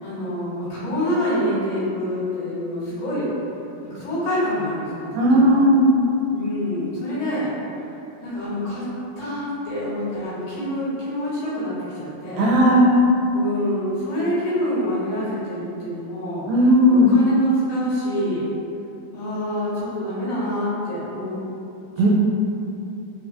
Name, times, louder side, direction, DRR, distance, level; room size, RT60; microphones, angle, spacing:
voice 1, 0.0-3.3 3.8-5.5 6.3-7.5 8.2-8.8 9.2-12.5 13.3-16.5 16.9-18.4 19.1-21.4, equal, 75° left, -12 dB, 3.4 m, -26 dB
voice 2, 5.1-5.9 12.4-13.0 16.5-17.1 22.0-22.1, equal, 85° right, -3 dB, 2.4 m, -15 dB
6.3 x 2.2 x 2.4 m, 2.8 s
omnidirectional pair, 4.2 m